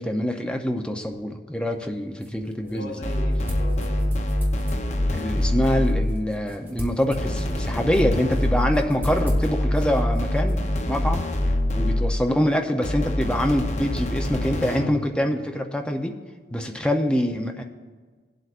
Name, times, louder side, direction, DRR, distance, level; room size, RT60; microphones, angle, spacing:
voice 1, 0.0-2.9 5.1-11.3 11.7-16.2 16.5-17.6, equal, 5° left, 3 dB, 0.6 m, -25 dB
sound 1, 1.7-11.6, left 1 dB, 10° right, 1.1 m, -38 dB
voice 2, 2.6-4.2 11.6-11.9 16.5-16.7, equal, 70° left, -2 dB, 3.2 m, -40 dB
sound 2, 3.0-6.3 7.2-12.3 12.8-15.0, left 1 dB, 40° left, 0.8 m, -25 dB
18.5 x 7.8 x 2.5 m, 1.5 s
head